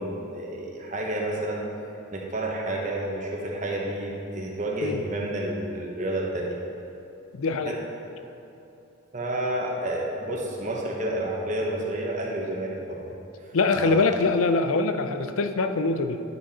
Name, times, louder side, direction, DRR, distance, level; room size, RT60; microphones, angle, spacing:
voice 1, 0.0-1.7 2.1-6.6 7.6-7.9 9.1-13.0 13.7-14.0, right 1 dB, 35° right, -2 dB, 1.2 m, -30 dB
voice 2, 7.3-7.8 13.5-16.2, left 3 dB, 75° left, 8 dB, 0.5 m, -23 dB
10.5 x 6.2 x 4.2 m, 2.9 s
head